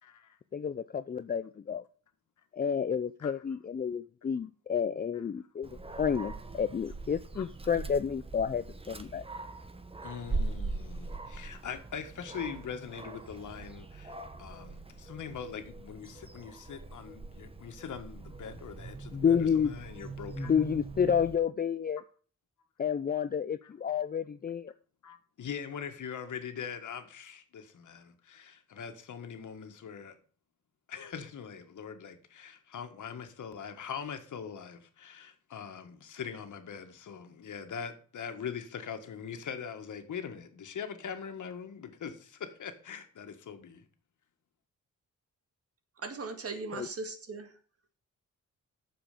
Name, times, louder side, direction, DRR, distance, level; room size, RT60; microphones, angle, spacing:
voice 1, 0.0-0.4 3.2-3.3 7.4-7.5 10.0-14.1 14.4-20.5 23.6-23.7 25.0-30.2 30.9-43.9, left 7 dB, 75° left, 1.7 m, -42 dB
voice 2, 0.5-1.8 2.5-5.7 6.0-9.2 19.1-19.7 20.4-22.0 22.8-24.7 46.8-46.9, left 7 dB, 30° left, 0.5 m, -30 dB
Dog, 5.6-21.4, right 3 dB, 20° right, 1.0 m, -41 dB
voice 3, 46.0-47.5, right 3 dB, 50° right, 2.0 m, -38 dB
9.0 x 7.0 x 6.7 m
wide cardioid pair, 110°, 30 cm